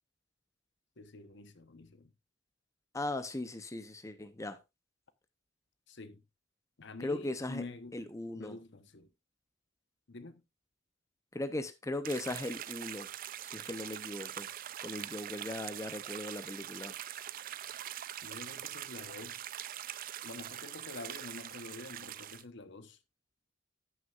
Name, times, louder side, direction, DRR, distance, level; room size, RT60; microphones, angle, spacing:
voice 1, 1.0-2.1 5.9-6.2 6.8-8.0 8.4-9.1 10.1-10.4 18.2-19.5 20.2-23.0, left 3 dB, 65° left, 1.0 m, -47 dB
voice 2, 2.9-4.6 7.0-7.6 7.9-8.6 11.3-13.1 13.4-14.5 14.8-16.9, left 2 dB, 15° left, 0.7 m, -38 dB
sound 1, 12.0-22.4, right 11 dB, 45° right, 0.4 m, -43 dB
14.5 x 6.5 x 2.4 m
head